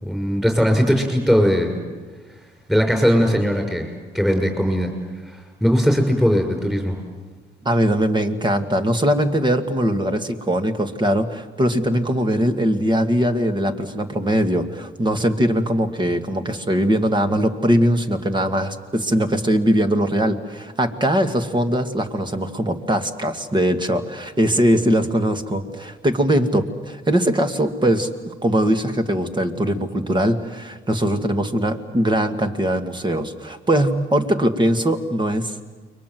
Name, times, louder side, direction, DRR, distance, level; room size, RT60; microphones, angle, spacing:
voice 1, 0.0-1.7 2.7-3.9 4.1-4.9 5.3-7.0, equal, ahead, 3 dB, 6.1 m, -19 dB
voice 2, 7.6-35.6, right 1 dB, 25° right, 6 dB, 2.3 m, -21 dB
29.5 x 23.0 x 7.9 m, 1.3 s
cardioid pair, 90°, 20 cm